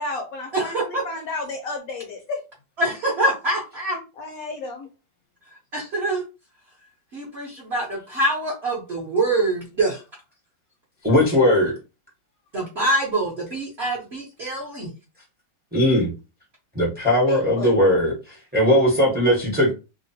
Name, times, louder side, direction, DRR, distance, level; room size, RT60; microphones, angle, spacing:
voice 1, 0.0-2.4 4.2-4.9 17.3-17.7, left 3 dB, 65° left, 0.9 m, -32 dB
voice 2, 0.5-1.0 2.8-4.0 5.7-6.2 7.1-10.0 12.5-14.9, right 2 dB, 55° right, 0.7 m, -25 dB
voice 3, 11.0-11.7 15.7-16.1 16.7-19.7, left 1 dB, 10° right, 0.4 m, -19 dB
2.9 x 2.0 x 2.6 m
omnidirectional pair, 1.9 m